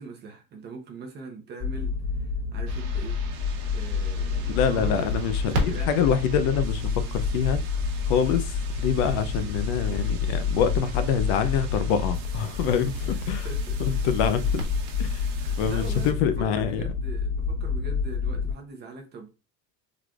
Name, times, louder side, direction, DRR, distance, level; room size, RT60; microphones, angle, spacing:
voice 1, 0.0-1.9 2.2-3.2 3.7-5.1 5.5-6.1 9.3-9.5 13.0-14.0 15.0-19.3, right 4 dB, 25° right, 0.7 m, -41 dB
sound 1, 1.6-18.5, left 5 dB, 20° left, 1.9 m, -29 dB
sound 2, 2.7-16.1, right 7 dB, 85° right, 1.0 m, -46 dB
Crackle, 4.3-15.5, right 2 dB, 50° right, 1.3 m, -39 dB
voice 2, 4.5-6.8 7.1-7.6 8.1-13.5 13.8-14.7 15.0-15.3 15.6-16.8, left 7 dB, 55° left, 0.5 m, -26 dB
3.8 x 3.2 x 2.3 m
cardioid pair, 170°, 41 cm